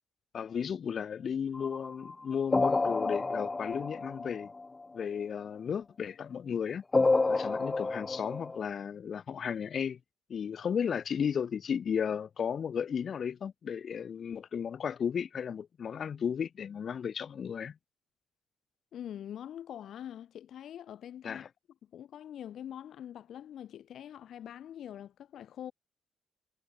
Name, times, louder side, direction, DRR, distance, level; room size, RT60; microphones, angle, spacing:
voice 1, 0.3-4.5 4.9-6.8 7.3-10.0 10.3-17.7 21.2-21.5, left 7 dB, 50° left, 5.8 m, -34 dB
sound 1, 1.5-4.8 6.9-8.7, left 3 dB, 25° left, 2.1 m, -29 dB
voice 2, 18.9-21.4 21.9-25.7, left 10 dB, 70° left, 5.6 m, -44 dB
cardioid pair, 90°, 0 cm